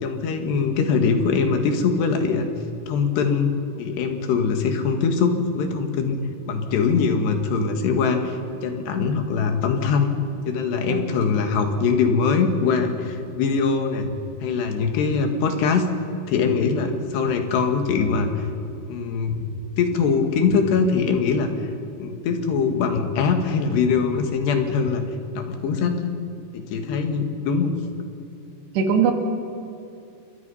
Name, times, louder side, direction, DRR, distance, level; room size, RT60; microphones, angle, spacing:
voice 1, 0.0-2.5 2.9-3.5 3.8-6.2 6.5-10.1 10.5-14.1 14.4-15.9 16.3-18.5 18.9-19.5 19.8-21.5 22.0-25.0 25.3-26.1 26.5-27.8, left 5 dB, 90° left, 5 dB, 4.1 m, -22 dB
voice 2, 10.9-11.2 28.8-29.1, right 7 dB, 90° right, 4 dB, 4.3 m, -21 dB
28.5 x 23.5 x 5.7 m, 2.6 s
omnidirectional pair, 4.7 m